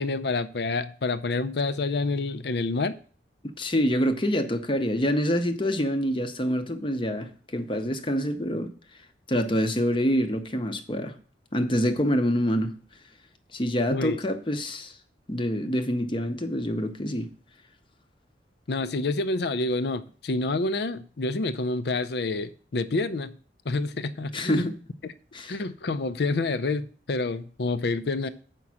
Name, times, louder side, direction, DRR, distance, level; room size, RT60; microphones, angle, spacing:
voice 1, 0.0-2.9 13.9-14.2 18.7-23.3 23.6-24.7 25.0-25.1 25.5-28.3, left 3 dB, 60° left, 0.5 m, -28 dB
voice 2, 3.4-8.7 9.3-11.2 11.5-12.7 13.5-14.9 15.3-17.3 24.3-24.7 25.3-25.6, equal, 25° left, 0.8 m, -26 dB
7.1 x 5.4 x 6.1 m
head